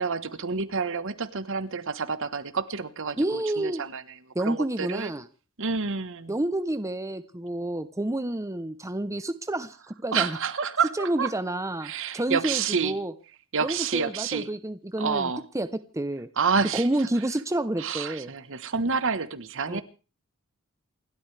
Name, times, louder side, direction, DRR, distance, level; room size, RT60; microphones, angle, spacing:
voice 1, 0.0-4.0 4.4-5.1 5.6-6.3 10.1-11.3 11.8-12.9 13.5-14.5 15.0-15.4 16.4-16.8 17.8-19.8, right 5 dB, 65° right, 1.2 m, -28 dB
voice 2, 3.2-3.8 4.3-5.3 6.3-10.4 10.9-13.1 13.6-16.3 16.7-18.3 19.7-19.8, right 1 dB, 15° right, 0.8 m, -29 dB
28.0 x 12.5 x 3.4 m
head